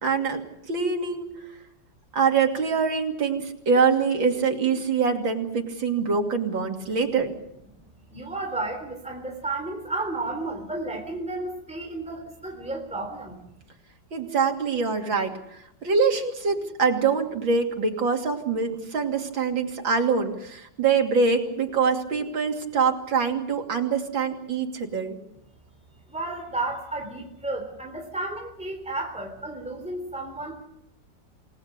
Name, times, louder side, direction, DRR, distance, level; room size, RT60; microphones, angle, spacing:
voice 1, 0.0-0.4 0.7-1.3 2.1-7.3 14.1-25.2, right 5 dB, 90° right, 3 dB, 3.4 m, -24 dB
voice 2, 8.1-13.4 26.1-30.6, right 2 dB, 5° right, 3 dB, 3.6 m, -32 dB
28.5 x 19.0 x 6.8 m, 0.80 s
omnidirectional pair, 2.0 m